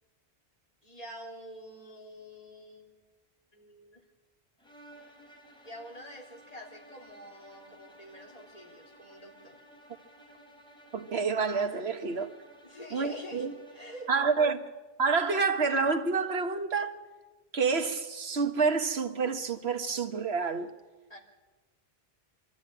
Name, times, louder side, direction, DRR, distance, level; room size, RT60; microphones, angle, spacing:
voice 1, 0.8-3.0 3.5-4.0 5.6-9.6 12.6-13.5 13.7-14.1 21.1-21.2, equal, 35° left, 3.2 m, -46 dB
sound 1, 4.6-14.3, right 1 dB, 5° left, 3.7 m, -55 dB
voice 2, 10.9-12.3 12.9-13.5 14.1-14.7 15.0-17.0 17.5-20.7, right 4 dB, 80° right, 1.6 m, -28 dB
25.0 x 13.0 x 8.8 m
omnidirectional pair, 1.1 m